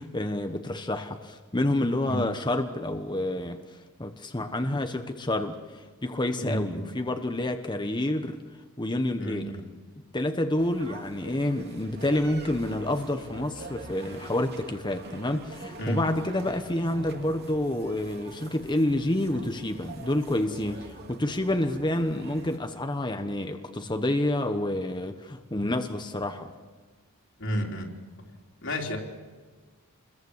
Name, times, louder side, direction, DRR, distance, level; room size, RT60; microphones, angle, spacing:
voice 1, 0.0-3.6 4.0-8.4 8.8-9.5 10.1-26.5, left 1 dB, 20° left, 6 dB, 1.1 m, -28 dB
voice 2, 6.4-6.9 9.2-9.6 15.8-16.1 27.4-28.0 28.6-29.0, equal, 60° left, 1 dB, 3.9 m, -31 dB
sound 1, 10.6-22.6, right 2 dB, 45° right, 2.6 m, -45 dB
28.0 x 22.0 x 8.1 m, 1.4 s
head